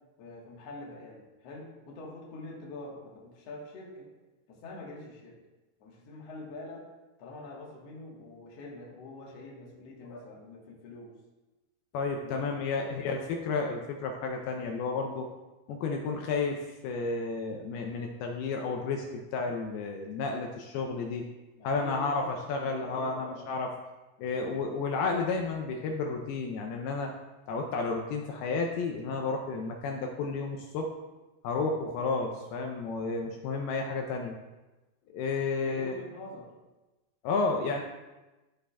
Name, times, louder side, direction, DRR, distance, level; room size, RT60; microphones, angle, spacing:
voice 1, 0.2-4.1 4.5-5.4 5.8-6.9 7.2-11.2 12.2-12.9 21.6-22.3 22.6-23.5 35.5-36.5, left 2 dB, 65° left, -3 dB, 1.6 m, -45 dB
voice 2, 11.9-15.3 15.7-21.3 21.6-23.7 24.2-27.1 27.5-30.9 31.4-34.3 35.1-35.9 37.2-37.8, left 4 dB, 80° left, 2 dB, 2.4 m, -32 dB
13.0 x 4.9 x 2.3 m, 1.1 s
omnidirectional pair, 4.8 m